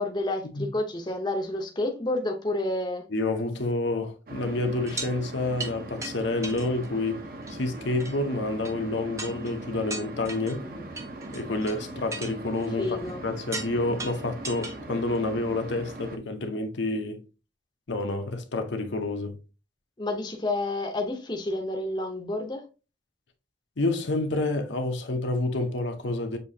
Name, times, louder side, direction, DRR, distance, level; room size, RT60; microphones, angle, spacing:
voice 1, 0.0-3.1 10.6-10.8 12.8-13.2 20.0-22.7, left 2 dB, 25° left, 0.7 m, -30 dB
voice 2, 3.1-7.2 7.5-10.6 11.3-13.0 13.2-17.2 17.9-19.4 23.8-26.4, left 2 dB, 75° left, 0.8 m, -29 dB
sound 1, 4.3-16.2, right 2 dB, 50° right, 0.7 m, -40 dB
sound 2, 4.9-5.1 5.6-5.7 6.0-6.1 6.4-7.1 7.4-7.6 8.0-8.2 8.7-8.8 9.2-9.5 9.9-10.6 11.0-11.8 12.1-13.1 13.5-13.7 14.0-14.8 15.2-15.3, right 3 dB, 15° right, 0.6 m, -37 dB
6.7 x 2.8 x 2.7 m
head